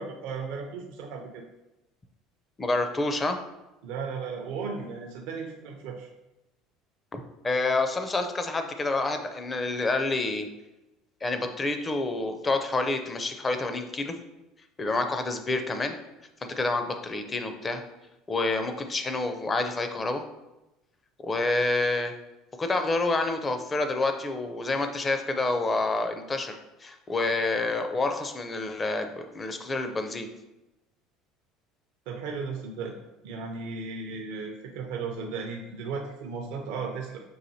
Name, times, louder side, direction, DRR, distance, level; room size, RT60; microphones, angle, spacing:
voice 1, 0.0-1.4 3.8-6.1 32.1-33.0 33.2-37.2, right 5 dB, 70° right, 1 dB, 0.5 m, -35 dB
voice 2, 2.6-3.4 7.1-10.5 11.2-14.2 14.8-16.0 16.4-17.8 18.3-20.2 21.2-22.1 22.6-30.3, left 2 dB, 25° left, 6 dB, 0.5 m, -28 dB
5.6 x 2.6 x 2.7 m, 0.99 s
hypercardioid pair, 75°, 0 cm